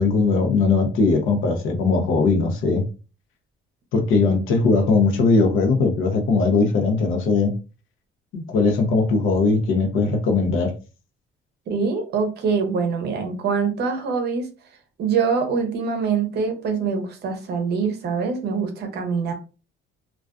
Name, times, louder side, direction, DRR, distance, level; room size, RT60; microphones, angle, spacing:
voice 1, 0.0-2.8 3.9-7.6 8.3-10.7, left 4 dB, 75° left, 4 dB, 0.6 m, -19 dB
voice 2, 11.7-14.5 15.0-19.3, right 5 dB, 50° right, 6 dB, 0.6 m, -24 dB
2.4 x 2.3 x 2.3 m, 0.33 s
cardioid pair, 175°, 21 cm